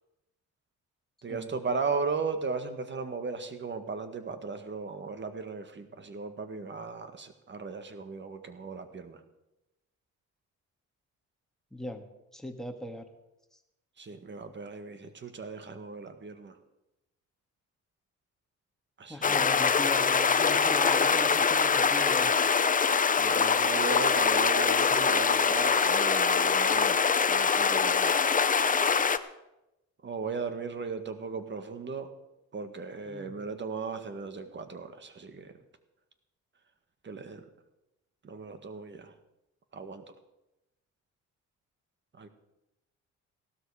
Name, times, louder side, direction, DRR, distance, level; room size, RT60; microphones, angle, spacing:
voice 1, 1.2-9.2 14.0-16.6 19.0-19.4 23.1-28.2 30.0-32.1 32.5-35.6 37.0-37.5 38.2-39.1 39.7-40.2 42.1-42.3, right 4 dB, 40° right, 9 dB, 1.8 m, -37 dB
voice 2, 11.7-12.0 12.3-13.0 13.5-13.6 19.1-22.5 33.1-33.3, left 1 dB, ahead, 3 dB, 2.0 m, -39 dB
sound 1, 19.2-29.2, left 5 dB, 25° left, 0.8 m, -24 dB
16.5 x 12.5 x 5.0 m, 0.93 s
cardioid pair, 90°, 30 cm